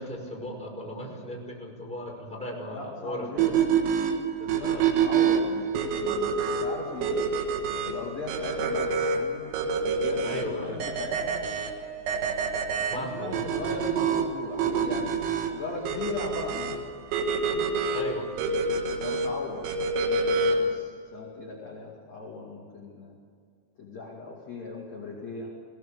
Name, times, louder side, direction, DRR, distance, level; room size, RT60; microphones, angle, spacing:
voice 1, 0.0-3.7 4.6-4.9 10.2-10.8 12.9-13.4 17.9-18.4, equal, ahead, -2 dB, 4.8 m, -36 dB
voice 2, 2.7-3.8 4.4-7.3 7.8-9.5 9.8-11.5 12.8-16.8 17.4-17.8 19.0-19.7 20.0-23.1 23.8-25.5, left 3 dB, 40° left, -2 dB, 3.2 m, -38 dB
sound 1, 3.4-20.8, right 5 dB, 90° right, 4.4 m, -27 dB
22.5 x 17.0 x 6.9 m, 2.2 s
omnidirectional pair, 5.8 m